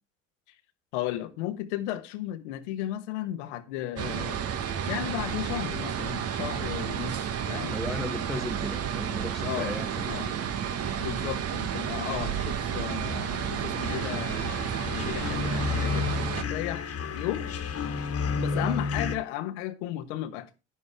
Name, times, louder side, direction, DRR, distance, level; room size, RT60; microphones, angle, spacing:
voice 1, 0.9-4.4 4.9-7.8 9.4-9.7 10.1-10.3 11.0-14.6 14.9-16.1 16.4-16.8 17.1-17.5 18.4-20.5, left 13 dB, 65° left, 1.3 m, -34 dB
sound 1, 4.0-16.4, right 8 dB, 40° right, 1.4 m, -31 dB
voice 2, 7.7-10.3 18.5-18.8, left 1 dB, ahead, 0.9 m, -36 dB
sound 2, 12.4-19.1, left 5 dB, 40° left, 1.8 m, -32 dB
11.0 x 10.5 x 3.6 m
figure-of-eight pair, 65°, 37 cm